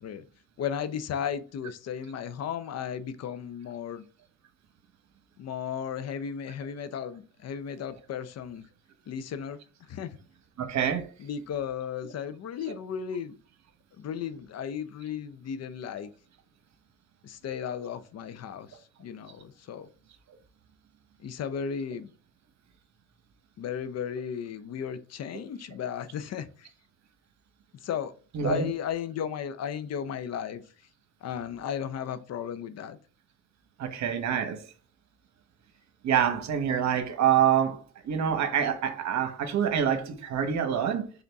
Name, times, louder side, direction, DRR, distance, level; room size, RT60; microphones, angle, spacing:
voice 1, 0.6-4.1 5.4-8.6 9.1-9.6 9.9-10.2 11.2-13.4 14.0-16.1 17.2-19.9 21.2-22.1 23.6-26.7 27.8-28.1 28.4-30.6 31.2-33.0, left 8 dB, 55° left, 0.6 m, -35 dB
voice 2, 10.6-11.1 28.3-28.7 33.8-34.6 36.0-41.1, right 8 dB, 65° right, 1.1 m, -26 dB
3.9 x 3.6 x 3.5 m
cardioid pair, 90°, 30 cm